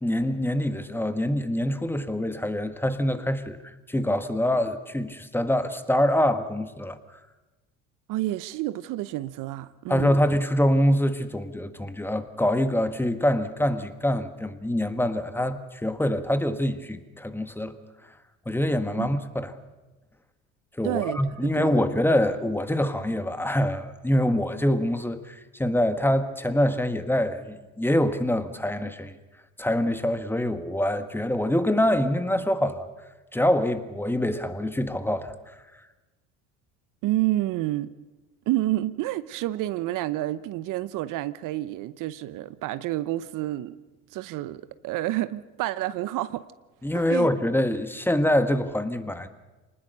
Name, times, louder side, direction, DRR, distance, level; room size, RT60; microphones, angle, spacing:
voice 1, 0.0-3.6 3.9-7.0 9.9-17.7 18.4-19.5 20.8-29.2 29.6-32.9 33.3-35.3 46.8-49.3, left 1 dB, 5° left, 10 dB, 1.6 m, -25 dB
voice 2, 8.1-10.1 19.0-19.1 20.8-21.8 37.0-37.9 38.5-43.8 44.1-46.5 46.9-47.3, right 15 dB, 60° right, 15 dB, 0.8 m, -29 dB
25.0 x 20.0 x 6.7 m, 1.1 s
supercardioid pair, 85°, 35 cm